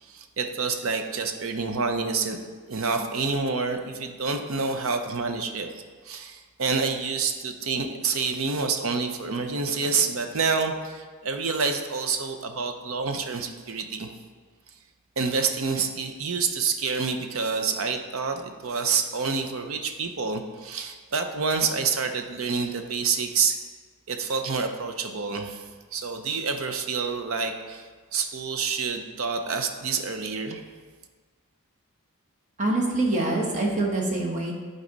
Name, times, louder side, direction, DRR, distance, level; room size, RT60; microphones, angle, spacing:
voice 1, 0.0-2.4 2.7-14.1 15.2-23.5 24.1-30.6, right 5 dB, 65° right, 6 dB, 0.7 m, -28 dB
voice 2, 32.6-34.5, right 2 dB, 35° right, -1 dB, 1.2 m, -25 dB
10.5 x 4.1 x 4.0 m, 1.5 s
head